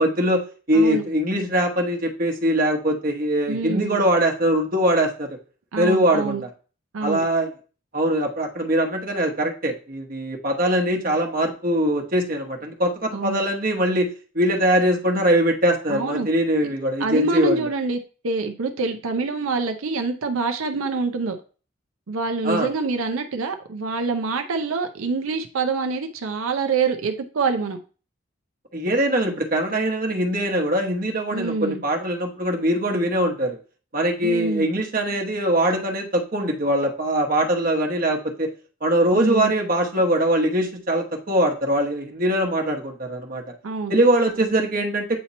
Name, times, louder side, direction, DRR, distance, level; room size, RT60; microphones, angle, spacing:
voice 1, 0.0-5.3 5.8-6.5 7.0-7.5 7.9-14.1 14.3-17.6 22.4-22.7 28.7-33.6 33.9-38.5 38.8-43.4 43.9-45.2, right 1 dB, 45° right, 2 dB, 1.0 m, -22 dB
voice 2, 3.5-4.0 5.7-6.4 6.9-7.2 13.1-13.4 15.9-16.3 17.0-18.0 18.2-21.4 22.1-27.8 31.3-31.8 34.2-34.7 39.1-39.5 43.6-43.9, right 4 dB, 90° right, 6 dB, 0.6 m, -25 dB
8.5 x 2.9 x 4.0 m, 0.39 s
head